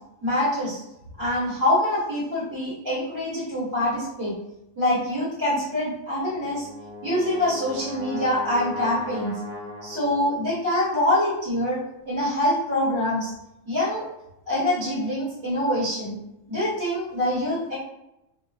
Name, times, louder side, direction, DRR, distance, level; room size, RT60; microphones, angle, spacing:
voice 1, 0.2-0.8 1.2-4.3 4.7-6.7 7.0-9.4 9.8-11.8 12.1-13.3 13.6-14.1 14.5-16.1 16.5-17.8, left 1 dB, 35° right, -10 dB, 1.4 m, -25 dB
Brass instrument, 6.2-10.5, left 2 dB, 50° left, 0.7 m, -37 dB
2.5 x 2.3 x 2.3 m, 0.87 s
omnidirectional pair, 1.3 m